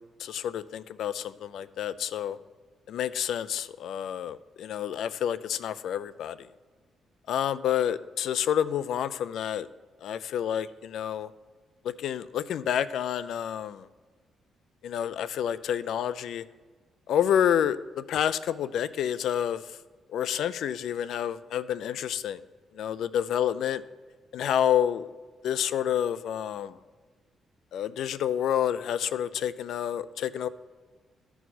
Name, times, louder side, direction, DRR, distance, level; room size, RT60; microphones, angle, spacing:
voice 1, 0.0-2.4 2.9-6.4 7.3-9.7 10.0-11.3 11.8-13.9 14.8-16.4 17.1-19.6 20.1-22.4 22.8-23.8 24.3-25.1 25.4-26.8 27.7-30.5, left 9 dB, 75° left, 15 dB, 0.4 m, -29 dB
13.5 x 4.6 x 4.2 m, 1.4 s
cardioid pair, 140°, 0 cm